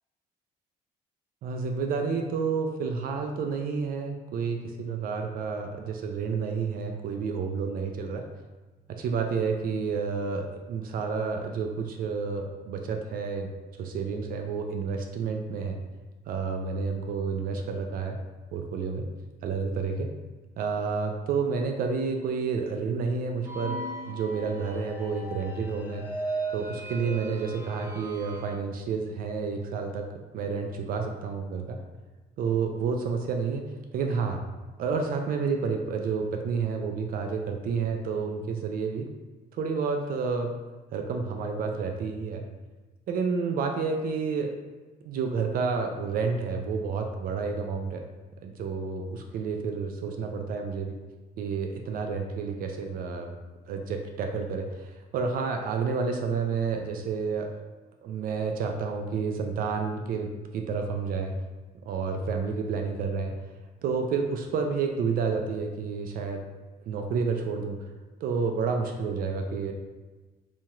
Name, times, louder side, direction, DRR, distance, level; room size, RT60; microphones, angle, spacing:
voice 1, 1.4-8.3 8.9-13.5 13.8-15.8 16.3-18.2 18.5-19.1 19.4-20.1 20.6-26.1 26.5-30.1 30.3-31.8 32.4-34.4 34.8-39.1 39.5-40.5 40.9-42.4 43.1-44.5 45.0-48.0 48.4-50.9 51.4-53.3 53.7-57.5 58.0-61.4 61.9-63.3 63.8-66.4 66.9-67.8 68.2-69.7, right 5 dB, 60° right, 4 dB, 0.4 m, -30 dB
sound 1, 23.5-28.5, right 2 dB, 10° right, 0.7 m, -37 dB
4.2 x 2.9 x 2.4 m, 1.3 s
cardioid pair, 110°, 17 cm